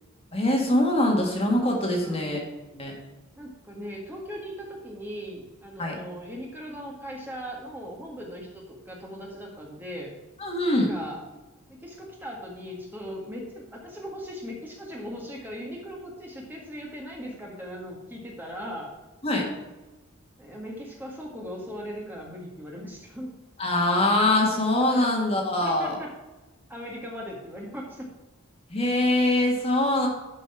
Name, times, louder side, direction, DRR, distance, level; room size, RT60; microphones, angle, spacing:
voice 1, 0.3-2.4 2.7-2.9 5.8-6.0 10.4-10.9 19.2-19.5 23.6-26.0 28.7-30.1, left 1 dB, 25° left, 0 dB, 1.8 m, -23 dB
voice 2, 2.0-2.4 3.4-10.1 10.7-11.2 11.7-18.9 20.4-23.3 24.9-25.1 25.6-26.1 26.7-28.1, equal, 10° right, -2 dB, 1.6 m, -39 dB
11.5 x 5.4 x 4.8 m, 1.1 s
head